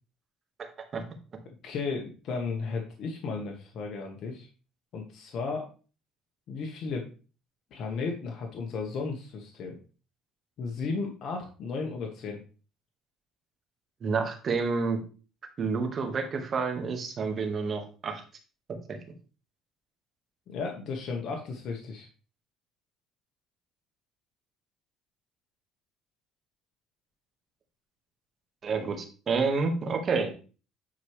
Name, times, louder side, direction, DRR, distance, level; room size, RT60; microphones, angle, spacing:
voice 1, 1.6-4.5 4.9-5.7 6.5-7.1 7.7-9.8 10.6-12.4 20.5-22.1, left 4 dB, 55° left, 1 dB, 1.4 m, -34 dB
voice 2, 14.0-15.0 15.6-18.2 18.9-19.0 28.6-30.4, right 4 dB, 40° right, 5 dB, 1.7 m, -29 dB
10.0 x 4.5 x 3.3 m, 0.36 s
cardioid pair, 110°, 0 cm